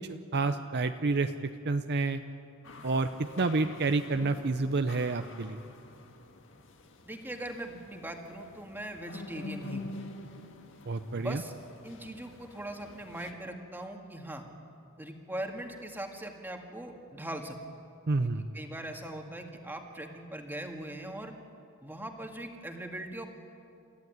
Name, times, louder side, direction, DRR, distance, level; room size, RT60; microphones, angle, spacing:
voice 1, 0.3-1.3 1.6-2.2 2.8-3.1 3.4-5.6 10.9-11.4 18.1-18.5, right 3 dB, 50° right, 8 dB, 0.7 m, -28 dB
sound 1, 2.6-13.3, left 2 dB, 60° left, 1.7 m, -47 dB
voice 2, 7.1-9.9 11.1-11.5 11.8-14.4 15.0-17.6 18.2-21.3 21.8-23.3, right 1 dB, 10° right, 3 dB, 1.9 m, -40 dB
28.0 x 14.0 x 9.5 m, 2.5 s
head